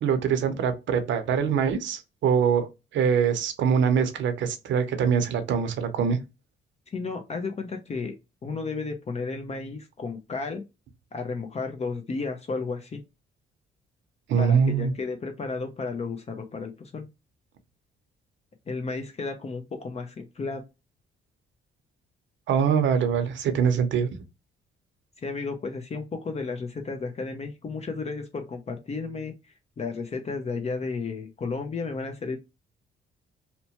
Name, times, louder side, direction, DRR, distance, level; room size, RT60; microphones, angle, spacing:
voice 1, 0.0-2.7 2.9-6.2 14.3-14.9 22.5-24.2, right 7 dB, 70° right, 0.7 m, -23 dB
voice 2, 6.9-8.1 8.4-10.6 11.1-13.0 14.4-17.1 18.7-20.6 25.2-29.3 29.8-32.4, left 4 dB, 35° left, 0.5 m, -33 dB
2.8 x 2.1 x 2.8 m
cardioid pair, 90°, 20 cm